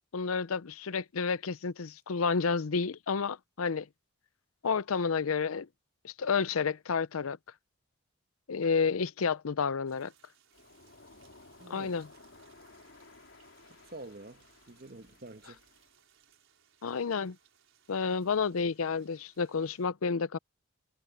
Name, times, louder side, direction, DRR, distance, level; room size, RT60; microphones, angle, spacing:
voice 1, 0.1-3.9 4.6-5.7 6.0-7.4 8.5-10.1 11.7-12.1 16.8-17.4 17.9-20.4, left 5 dB, 85° left, 0.6 m, -30 dB
sound 1, 9.9-19.9, right 9 dB, 65° right, 5.5 m, -66 dB
Waves surf, 10.5-16.0, left 3 dB, 65° left, 3.5 m, -57 dB
voice 2, 11.6-12.0 13.8-15.6, right 2 dB, 45° right, 1.2 m, -48 dB
head